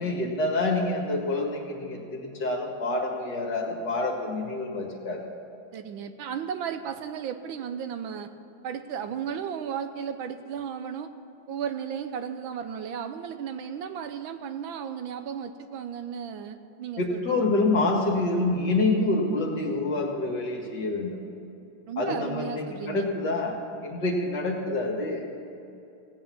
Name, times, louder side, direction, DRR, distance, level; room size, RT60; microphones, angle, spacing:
voice 1, 0.0-5.2 17.0-21.1 22.0-25.2, left 2 dB, 55° left, 0 dB, 2.5 m, -27 dB
voice 2, 5.7-8.3 8.6-11.1 11.5-17.5 21.9-23.0, right 7 dB, 75° right, 9 dB, 1.4 m, -34 dB
17.0 x 8.8 x 7.3 m, 2.8 s
omnidirectional pair, 2.3 m